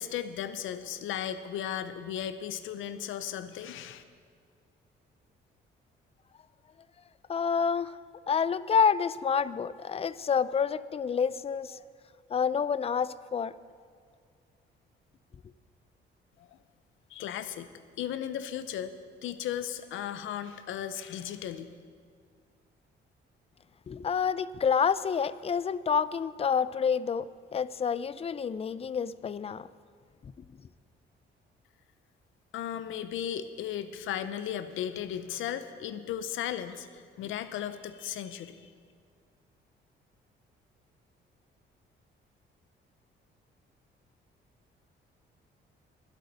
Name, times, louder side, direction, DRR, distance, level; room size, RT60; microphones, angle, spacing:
voice 1, 0.0-4.0 16.4-16.6 17.1-17.7 18.0-18.9 19.2-21.7 32.5-38.7, left 10 dB, 80° left, 12 dB, 0.7 m, -36 dB
voice 2, 7.3-8.0 8.3-11.8 12.3-13.5 23.9-29.7 30.2-30.3, left 6 dB, 30° left, 17 dB, 0.4 m, -28 dB
22.0 x 8.1 x 4.1 m, 2.1 s
cardioid pair, 90°, 20 cm